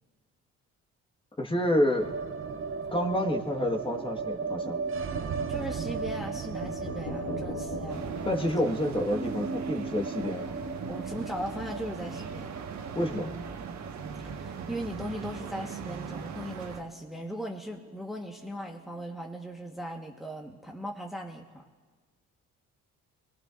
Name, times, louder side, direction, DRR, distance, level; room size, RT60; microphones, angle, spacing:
voice 1, 1.4-2.1 2.9-4.8 8.2-10.5 12.9-13.3, left 1 dB, 15° left, 2 dB, 1.5 m, -28 dB
sound 1, 2.0-18.1 18.4-18.5 18.7-19.5, right 5 dB, 45° right, 0.9 m, -37 dB
voice 2, 5.5-8.0 10.9-12.6 14.2-21.6, equal, ahead, 0 dB, 1.3 m, -38 dB
sound 2, 6.6-10.3, left 3 dB, 65° left, 2.6 m, -41 dB
sound 3, 7.9-16.8, right 6 dB, 65° right, 1.5 m, -40 dB
26.0 x 20.5 x 2.5 m, 1.4 s
cardioid pair, 90°, 30 cm